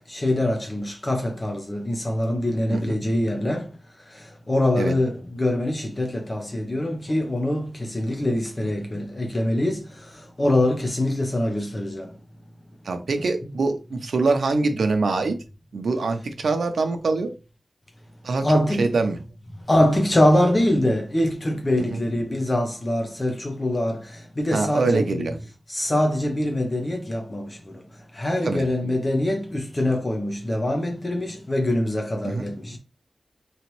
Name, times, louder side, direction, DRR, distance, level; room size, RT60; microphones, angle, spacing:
voice 1, 0.1-3.6 4.5-9.8 10.4-12.1 18.4-18.9 19.7-24.0 24.4-25.3 25.7-27.5 28.2-32.8, left 1 dB, 20° left, 0.6 m, -23 dB
voice 2, 12.8-15.4 15.7-17.3 18.2-18.5 18.8-19.2 21.8-22.0 24.5-25.3 28.4-28.6 32.2-32.5, right 3 dB, 70° right, 0.7 m, -24 dB
3.9 x 3.1 x 3.1 m
wide cardioid pair, 135°, 0 cm